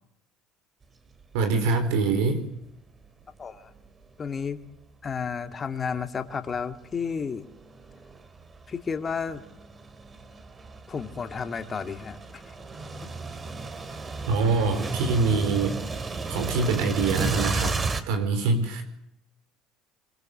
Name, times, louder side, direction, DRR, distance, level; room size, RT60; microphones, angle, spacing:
sound 1, 1.2-1.4 1.9-2.0 3.0-4.7 5.3-18.0, right 3 dB, 30° right, 3.2 m, -34 dB
voice 1, 1.3-2.4 14.3-15.8 16.3-17.7 18.1-18.8, right 4 dB, 75° right, 6 dB, 4.4 m, -24 dB
voice 2, 3.4-3.7 4.2-4.6 5.0-7.5 8.7-9.4 10.9-12.5 13.0-13.1 18.5-18.7, left 6 dB, 30° left, 7 dB, 2.4 m, -32 dB
25.0 x 23.0 x 8.1 m, 0.83 s
supercardioid pair, 85°, 0 cm